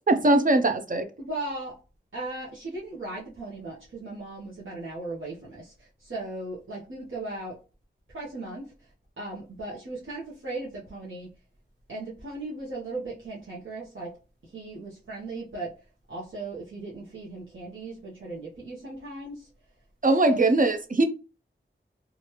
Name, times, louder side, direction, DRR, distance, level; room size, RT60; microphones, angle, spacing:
voice 1, 0.1-1.0 20.0-21.1, right 2 dB, 40° right, 0.5 m, -21 dB
voice 2, 1.2-1.7 2.1-7.6 8.1-8.9 9.2-11.3 11.9-14.1 14.4-15.7 16.1-19.5 20.2-20.4, right 2 dB, 75° right, 0.9 m, -37 dB
3.1 x 2.4 x 2.9 m
wide cardioid pair, 55°, 21 cm